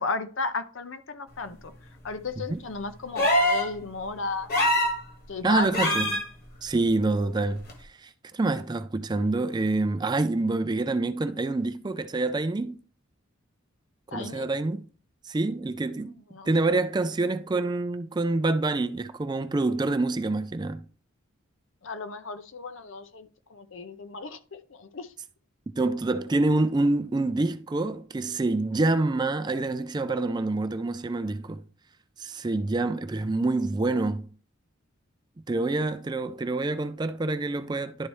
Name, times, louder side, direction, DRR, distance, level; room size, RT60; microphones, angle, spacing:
voice 1, 0.0-1.7 2.0-4.5 5.3-6.2 14.1-14.5 16.3-16.5 21.8-25.1, left 4 dB, 70° left, 0.7 m, -34 dB
sound 1, 3.2-3.7 4.5-5.0 5.7-6.2 7.7-7.8, left 1 dB, 50° left, 1.5 m, -23 dB
voice 2, 5.4-6.2 6.6-7.6 8.0-12.8 14.1-14.9 15.3-16.2 16.5-20.8 25.8-31.6 32.2-34.3 35.5-38.1, right 2 dB, 20° right, 0.4 m, -26 dB
11.0 x 4.2 x 3.1 m
head